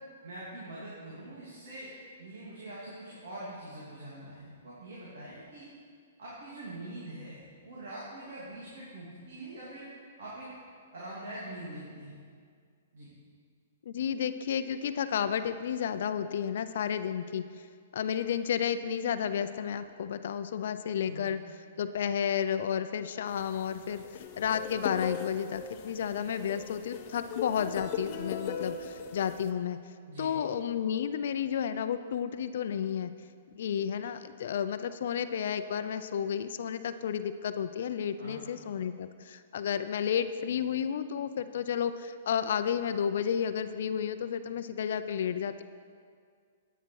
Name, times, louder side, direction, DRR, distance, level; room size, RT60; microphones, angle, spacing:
voice 1, 0.2-1.9 2.2-5.7 6.2-9.9 10.2-10.5 10.9-12.2 12.9-13.1 21.0-21.3 30.1-30.3 38.2-38.4, right 1 dB, 70° right, -7 dB, 2.7 m, -44 dB
voice 2, 13.9-17.4 17.9-21.4 21.8-24.0 24.4-29.8 30.2-33.1 33.5-45.6, left 8 dB, 65° left, 11 dB, 0.4 m, -32 dB
sound 1, 23.4-29.5, left 7 dB, 35° left, 0.7 m, -39 dB
10.0 x 8.9 x 4.7 m, 2.1 s
hypercardioid pair, 155°, 0 cm